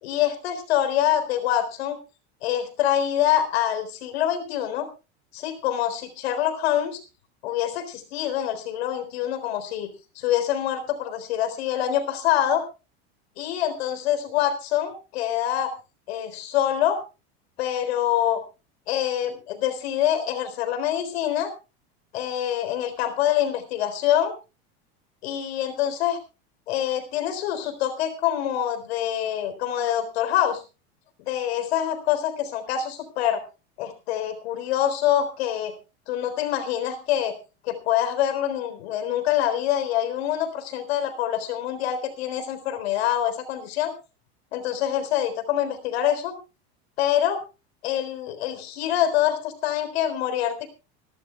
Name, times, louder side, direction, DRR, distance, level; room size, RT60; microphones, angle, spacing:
voice 1, 0.0-2.0 2.4-4.9 5.3-7.0 7.4-12.6 13.4-15.7 16.1-17.0 17.6-18.4 18.9-21.5 22.1-24.3 25.2-26.2 26.7-30.6 31.3-33.4 33.8-35.8 36.1-37.3 37.6-43.9 44.5-46.3 47.0-47.4 47.8-50.7, left 11 dB, 80° left, 9 dB, 3.9 m, -25 dB
26.5 x 12.5 x 2.3 m, 0.30 s
supercardioid pair, 135°, 31 cm